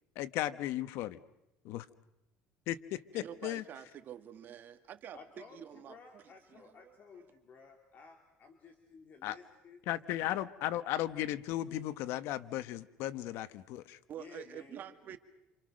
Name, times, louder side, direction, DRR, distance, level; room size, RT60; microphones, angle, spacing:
voice 1, 0.1-1.2 1.6-1.9 2.7-3.6 9.2-9.4 9.9-14.0, left 13 dB, 70° left, 13 dB, 1.3 m, -36 dB
voice 2, 3.1-7.3 14.1-15.2, right 10 dB, 45° right, 7 dB, 2.2 m, -48 dB
voice 3, 5.1-9.8 14.2-14.8, left 5 dB, 40° left, 4 dB, 3.3 m, -55 dB
28.5 x 27.5 x 6.5 m, 0.92 s
cardioid pair, 120°, 4 cm